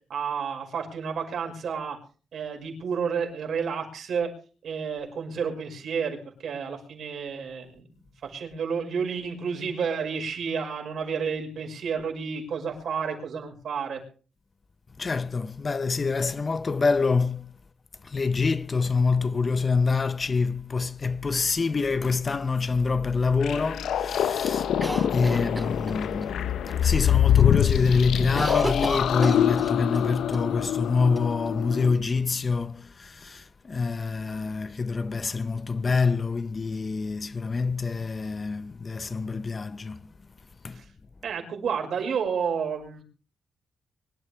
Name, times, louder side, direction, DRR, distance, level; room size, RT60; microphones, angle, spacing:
voice 1, 0.1-2.0 2.3-4.3 4.6-7.9 8.2-14.0 40.8-40.9 41.2-43.0, right 6 dB, 70° right, 5.7 m, -31 dB
voice 2, 15.0-17.5 18.0-24.7 25.1-26.4 26.8-40.0 40.6-40.8, left 4 dB, 30° left, 0.6 m, -26 dB
sound 1, 23.4-31.9, left 10 dB, 85° left, 0.6 m, -25 dB
Cough, 24.8-26.3 26.7-26.8 27.1-27.5 27.8-30.1 30.3-30.4 31.2-32.0, right 1 dB, 10° right, 0.7 m, -33 dB
24.0 x 12.5 x 3.4 m
wide cardioid pair, 140°, 0 cm